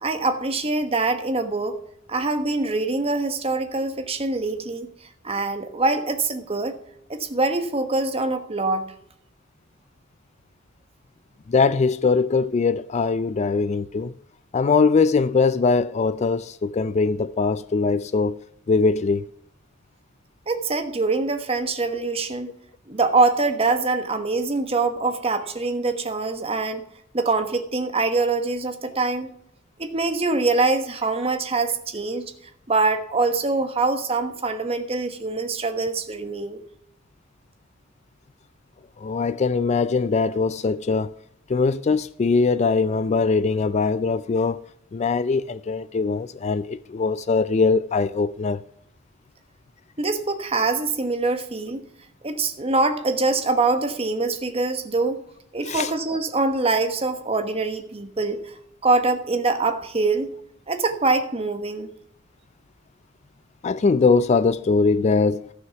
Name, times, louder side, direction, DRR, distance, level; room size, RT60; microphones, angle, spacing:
voice 1, 0.0-1.8 2.1-4.9 5.2-6.8 7.1-8.8 20.5-22.5 22.9-26.8 27.1-29.3 29.8-32.2 32.7-36.6 50.0-51.9 52.2-55.2 55.5-58.5 58.8-60.3 60.7-61.9, right 3 dB, 30° right, 1.2 m, -24 dB
voice 2, 11.5-14.1 14.5-18.3 18.7-19.2 21.9-22.0 39.0-41.1 41.5-44.6 44.9-48.6 55.7-55.9 63.6-65.4, left 4 dB, 35° left, 0.3 m, -21 dB
14.0 x 6.3 x 5.9 m
head